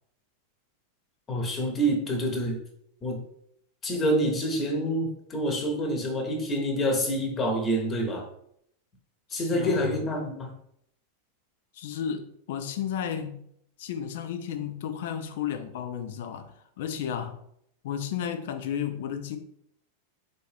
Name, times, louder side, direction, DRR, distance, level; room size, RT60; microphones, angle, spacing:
voice 1, 1.3-2.6 3.0-3.2 3.8-8.3 9.3-10.5, equal, 25° left, 0.8 m, -27 dB
voice 2, 9.3-9.9 11.7-13.4 13.8-17.4 17.8-19.4, left 8 dB, 55° left, 0.4 m, -33 dB
4.0 x 2.7 x 3.4 m
figure-of-eight pair, 90°, 0 cm